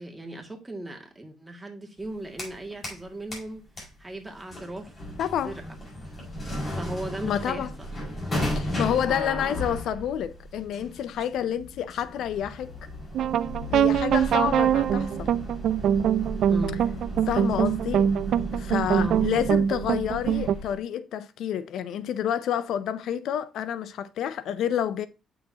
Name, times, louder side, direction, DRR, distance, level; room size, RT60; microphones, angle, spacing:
voice 1, 0.0-3.6 4.0-4.9 5.4-5.8 6.8-7.9 8.2-8.8 9.1-9.6 16.5-16.8 19.0-19.4, right 1 dB, 15° right, 2.1 m, -37 dB
sound 1, 2.0-3.0 3.3-20.8, equal, 30° left, 5.2 m, -35 dB
voice 2, 5.2-5.6 7.2-7.7 8.5-12.7 13.7-15.3 17.3-18.1 18.5-25.1, left 9 dB, 80° left, 0.5 m, -29 dB
sound 2, 13.1-20.5, right 9 dB, 70° right, 0.3 m, -24 dB
8.6 x 6.4 x 2.8 m
cardioid pair, 90°, 0 cm